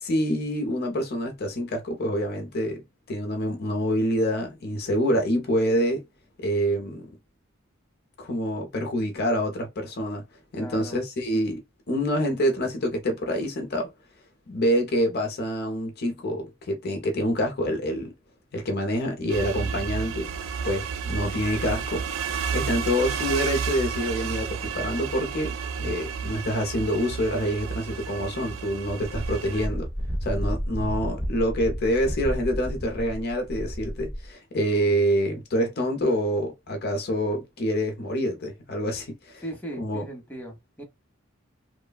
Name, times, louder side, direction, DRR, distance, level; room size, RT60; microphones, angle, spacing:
voice 1, 0.0-6.0 6.4-7.1 8.2-10.2 10.5-11.6 11.9-13.9 14.5-18.1 18.5-20.3 20.6-22.1 22.5-29.9 30.2-39.4 39.8-40.0, equal, 55° left, 0.7 m, -26 dB
voice 2, 10.6-11.0 39.4-40.8, right 1 dB, 10° left, 0.9 m, -38 dB
sound 1, 19.3-29.7, right 6 dB, 80° right, 0.4 m, -31 dB
Wind, 29.0-34.3, equal, 10° right, 0.5 m, -31 dB
3.1 x 2.2 x 2.2 m
head